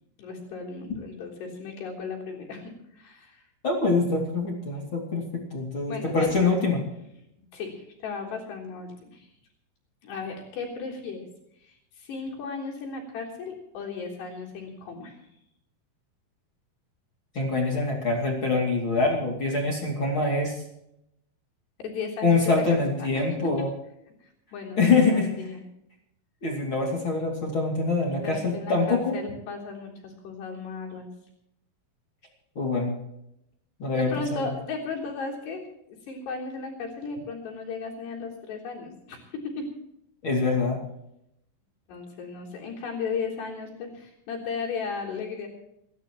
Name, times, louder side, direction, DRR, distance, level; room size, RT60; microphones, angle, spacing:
voice 1, 0.2-3.4 4.7-4.8 5.9-6.3 7.5-9.3 10.0-11.3 11.6-15.2 21.8-23.5 24.2-24.8 25.1-25.6 28.2-31.1 33.8-35.6 36.1-39.7 41.9-45.5, left 4 dB, 55° left, -2 dB, 5.5 m, -35 dB
voice 2, 3.6-6.8 17.3-20.6 22.2-23.7 24.8-25.3 26.4-29.1 32.6-33.0 33.8-34.5 40.2-40.8, left 3 dB, 35° left, -1 dB, 2.3 m, -24 dB
29.0 x 12.5 x 3.0 m, 0.80 s
omnidirectional pair, 5.9 m